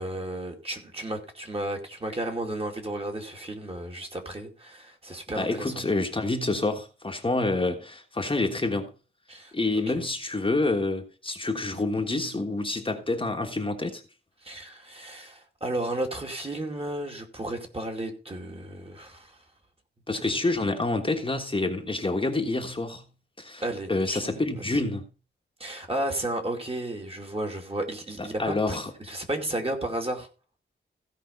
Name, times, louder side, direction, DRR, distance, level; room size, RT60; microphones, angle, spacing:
voice 1, 0.0-5.7 9.3-9.5 14.4-19.4 23.6-24.2 24.6-24.8 25.6-30.3, right 1 dB, 30° right, 2.5 m, -33 dB
voice 2, 5.3-8.9 9.5-14.0 20.1-23.0 23.4-23.6 23.9-25.0 28.2-28.9, left 2 dB, 25° left, 1.4 m, -27 dB
16.0 x 5.3 x 5.3 m
wide cardioid pair, 125°, 21 cm